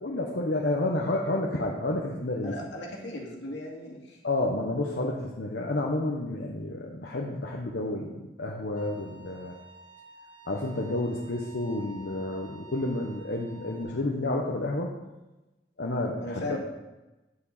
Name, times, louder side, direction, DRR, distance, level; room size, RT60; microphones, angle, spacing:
voice 1, 0.0-2.5 4.2-9.5 10.5-14.9 15.8-16.6, left 2 dB, 70° left, -1 dB, 1.0 m, -30 dB
voice 2, 2.4-4.2 16.2-16.6, left 1 dB, 85° left, -2 dB, 2.4 m, -37 dB
Bowed string instrument, 8.8-13.8, right 2 dB, 45° right, 2.2 m, -50 dB
9.4 x 8.6 x 4.1 m, 1.1 s
head